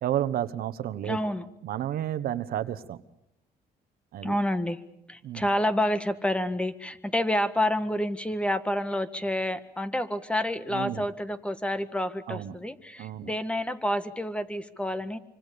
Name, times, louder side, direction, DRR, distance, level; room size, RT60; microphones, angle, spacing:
voice 1, 0.0-1.2 1.6-3.0 4.1-4.4 5.2-5.5 10.7-11.1 12.3-12.5 13.0-13.3, right 11 dB, 70° right, 13 dB, 1.3 m, -31 dB
voice 2, 1.0-1.4 4.2-4.8 5.1-15.2, left 1 dB, 5° left, 12 dB, 1.6 m, -28 dB
25.5 x 25.0 x 6.9 m, 0.82 s
cardioid pair, 105°, 16 cm